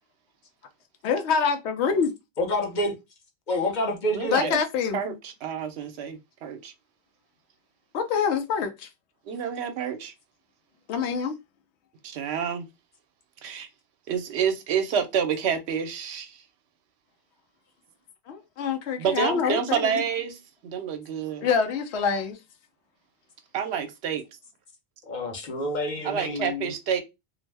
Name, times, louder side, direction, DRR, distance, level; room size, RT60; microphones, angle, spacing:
voice 1, 1.0-2.1 4.3-5.0 7.9-8.9 10.9-11.3 18.3-20.0 21.4-22.4, left 6 dB, 85° left, 0.8 m, -25 dB
voice 2, 2.4-3.0 3.5-4.6 25.0-26.7, left 1 dB, 50° left, 0.8 m, -28 dB
voice 3, 4.1-4.5 4.9-6.7 9.3-10.1 12.0-12.7 13.4-13.7 14.1-16.4 19.0-21.5 23.5-24.2 26.0-27.0, right 7 dB, 85° right, 0.9 m, -28 dB
2.5 x 2.0 x 3.2 m
omnidirectional pair, 1.1 m